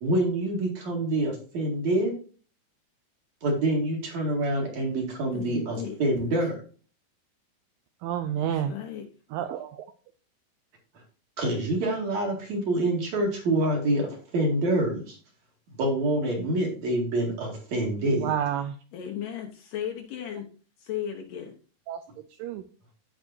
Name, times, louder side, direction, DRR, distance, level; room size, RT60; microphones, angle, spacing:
voice 1, 0.0-2.1 3.4-6.6 11.4-15.2 15.8-18.3, right 1 dB, 50° right, 0 dB, 3.0 m, -26 dB
voice 2, 5.3-6.4 8.4-9.1 18.9-20.5 20.8-21.5, left 9 dB, 70° left, 3 dB, 2.3 m, -36 dB
voice 3, 8.0-8.7 9.3-9.8 18.2-18.7 21.9-22.0 22.4-22.6, right 10 dB, 90° right, 9 dB, 2.0 m, -29 dB
14.0 x 5.1 x 2.7 m, 0.39 s
omnidirectional pair, 4.6 m